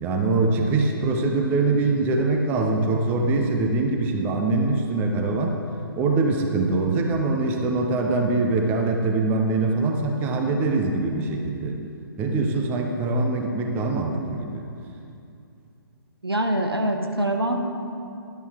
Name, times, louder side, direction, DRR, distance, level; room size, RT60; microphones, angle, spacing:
voice 1, 0.0-5.6 6.0-11.8 12.2-14.7, right 3 dB, 15° right, 2 dB, 0.6 m, -23 dB
voice 2, 16.2-17.6, right 1 dB, 90° right, 3 dB, 1.0 m, -24 dB
11.0 x 8.1 x 3.7 m, 2.6 s
figure-of-eight pair, 135°, 13 cm